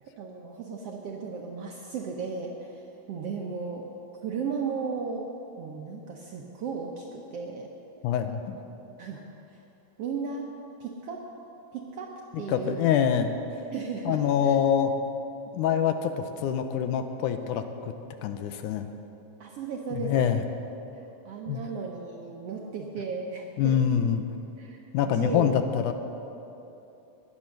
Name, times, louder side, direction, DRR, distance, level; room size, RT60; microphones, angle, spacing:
voice 1, 0.0-3.8 4.2-5.3 5.6-7.7 9.0-9.6 10.0-10.5 10.8-11.2 11.7-12.1 12.4-12.8 13.7-14.2 14.4-14.6 19.4-20.3 21.2-23.7 24.6-25.5, right 5 dB, 70° right, 0 dB, 1.5 m, -35 dB
voice 2, 8.0-8.6 12.5-13.3 14.1-14.9 15.5-17.9 18.2-18.9 19.9-20.4 21.5-21.7 23.6-24.2 24.9-25.9, left 8 dB, 80° left, 8 dB, 2.1 m, -25 dB
15.5 x 10.5 x 6.5 m, 3.0 s
omnidirectional pair, 3.8 m